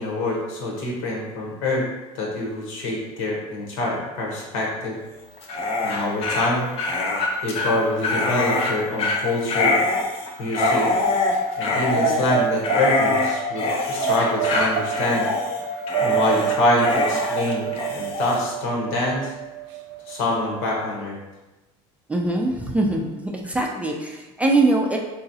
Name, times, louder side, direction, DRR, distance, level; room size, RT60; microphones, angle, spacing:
voice 1, 0.0-1.8 2.1-5.0 5.8-6.7 7.4-9.8 10.4-10.9 11.6-15.3 16.0-19.3 20.1-21.2, left 2 dB, 85° left, -2 dB, 1.2 m, -25 dB
Dog, 5.4-18.4, left 2 dB, 45° left, 0.6 m, -24 dB
sound 1, 10.6-20.8, right 6 dB, 90° right, 0.4 m, -28 dB
voice 2, 22.1-23.1 23.4-25.0, right 2 dB, 10° right, 0 dB, 0.4 m, -22 dB
3.7 x 3.1 x 2.7 m, 1.0 s
cardioid pair, 135°, 15 cm